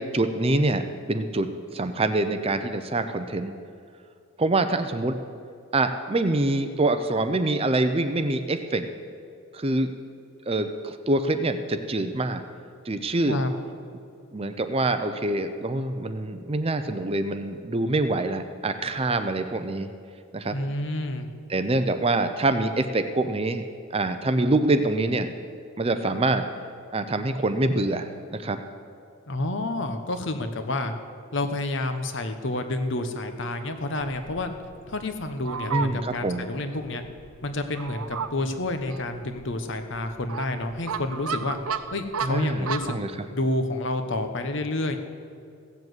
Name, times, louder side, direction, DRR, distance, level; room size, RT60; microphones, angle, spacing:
voice 1, 0.1-0.8 1.1-3.5 4.4-5.2 5.7-8.8 9.5-9.9 10.5-12.4 12.9-13.4 14.3-19.9 20.3-20.6 21.5-23.6 23.9-25.3 25.8-26.5 26.9-28.6 35.7-36.4 42.2-43.1, right 2 dB, 25° right, 9 dB, 0.5 m, -25 dB
voice 2, 20.5-21.3 29.3-30.9 31.3-34.6 34.9-37.0 37.4-41.6 41.9-43.0 43.3-45.0, left 2 dB, 55° left, 7 dB, 1.0 m, -29 dB
Fowl, 34.0-43.0, right 6 dB, 80° right, 0.6 m, -35 dB
16.0 x 7.3 x 7.9 m, 2.4 s
head